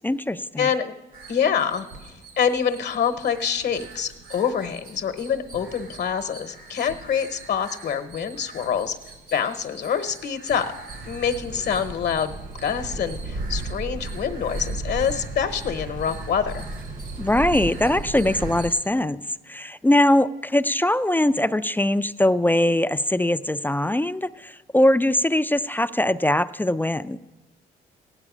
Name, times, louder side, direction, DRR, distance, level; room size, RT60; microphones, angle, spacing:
voice 1, 0.0-0.7 17.2-27.2, left 1 dB, 10° left, 13 dB, 0.4 m, -21 dB
voice 2, 0.6-0.9 1.3-1.9 2.4-9.0 9.3-10.7 11.1-16.7, left 7 dB, 60° left, 9 dB, 0.9 m, -26 dB
sound 1, 1.1-18.8, right 4 dB, 85° right, 4.0 m, -45 dB
sound 2, 10.9-18.7, right 2 dB, 40° right, 0.9 m, -33 dB
15.5 x 9.9 x 6.1 m, 1.1 s
cardioid pair, 90°, 20 cm